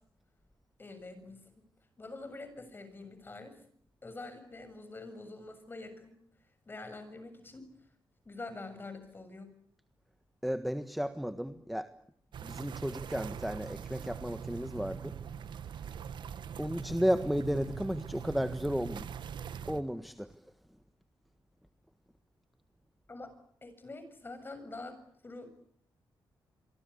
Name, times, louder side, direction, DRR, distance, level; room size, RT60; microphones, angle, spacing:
voice 1, 0.8-1.6 2.0-3.6 4.0-6.1 6.7-7.7 8.3-9.5 23.1-23.3 23.6-25.0 25.2-25.5, left 2 dB, 25° left, 10 dB, 7.3 m, -45 dB
voice 2, 10.4-11.9 12.4-15.2 15.8-16.0 16.6-19.1 19.7-20.4, equal, ahead, 9 dB, 1.5 m, -33 dB
sound 1, 12.3-19.8, right 8 dB, 70° right, 1.6 m, -42 dB
27.5 x 24.0 x 8.4 m, 0.65 s
wide cardioid pair, 125°, 8 cm